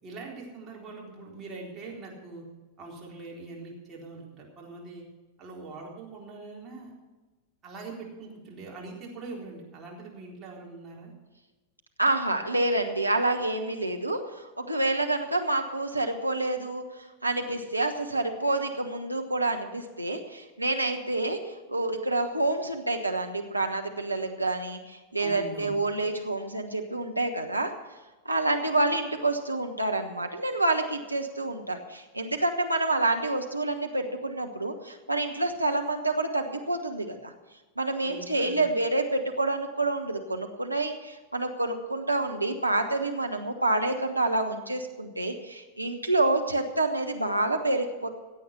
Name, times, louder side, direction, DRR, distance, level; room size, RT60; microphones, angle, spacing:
voice 1, 0.0-2.4 2.8-5.0 5.4-7.0 7.6-11.1 25.2-25.8 38.0-38.7, right 3 dB, 25° right, -3 dB, 4.0 m, -42 dB
voice 2, 12.0-27.7 28.2-37.3 37.8-48.1, right 2 dB, 85° right, 3 dB, 1.1 m, -28 dB
16.5 x 8.4 x 5.9 m, 1.2 s
figure-of-eight pair, 90°, 0 cm